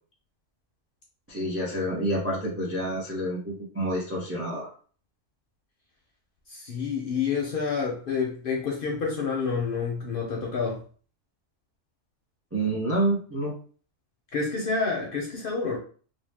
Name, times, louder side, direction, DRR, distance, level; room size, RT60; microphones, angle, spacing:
voice 1, 1.3-4.7 12.5-13.6, right 1 dB, 20° right, -3 dB, 0.4 m, -28 dB
voice 2, 6.5-10.8 14.3-15.8, left 5 dB, 60° left, -1 dB, 0.6 m, -28 dB
2.6 x 2.0 x 3.3 m, 0.42 s
omnidirectional pair, 1.3 m